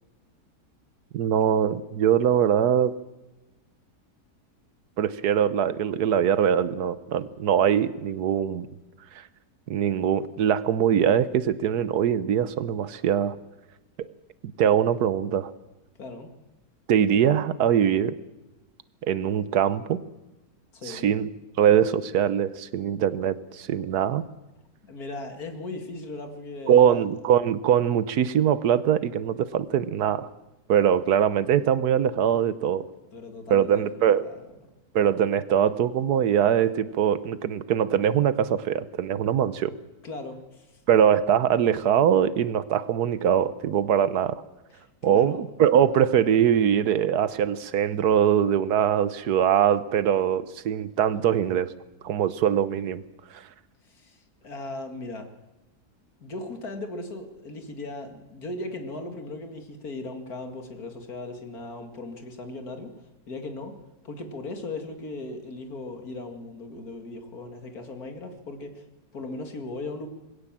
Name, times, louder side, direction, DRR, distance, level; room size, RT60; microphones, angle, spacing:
voice 1, 1.1-2.9 5.0-8.7 9.7-13.4 14.0-14.1 14.6-15.5 16.9-18.2 19.1-20.0 20.9-21.3 21.6-24.3 26.7-30.3 30.7-32.9 33.5-34.2 34.9-39.7 40.9-44.4 45.0-51.7 52.0-53.0 53.3-53.4, right 9 dB, 75° right, 15 dB, 1.4 m, -22 dB
voice 2, 16.0-16.3 20.7-21.1 24.8-27.0 33.1-34.4 40.0-40.8 44.7-45.4 53.8-55.3 56.2-62.9 63.3-63.8 64.0-68.9 69.1-70.1, left 2 dB, 65° left, 6 dB, 2.6 m, -38 dB
21.0 x 17.0 x 7.4 m, 1.0 s
omnidirectional pair, 1.7 m